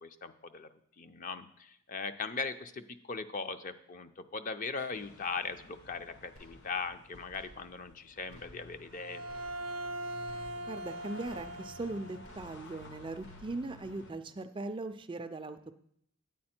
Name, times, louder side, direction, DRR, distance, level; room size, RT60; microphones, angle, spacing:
voice 1, 0.0-0.7 1.0-9.2, left 4 dB, 35° left, 10 dB, 0.5 m, -39 dB
sound 1, 4.9-14.1, left 2 dB, 55° left, 0.9 m, -54 dB
sound 2, 6.3-7.0 7.3-8.0 8.3-9.0 9.3-10.0 10.3-11.0 11.2-11.9 12.2-12.9 13.2-13.9, equal, 70° left, 1.9 m, -58 dB
Bowed string instrument, 8.9-12.4, right 1 dB, 70° right, 0.7 m, -41 dB
voice 2, 10.7-15.8, right 2 dB, 20° right, 9 dB, 0.3 m, -39 dB
9.2 x 8.6 x 4.3 m, 0.71 s
head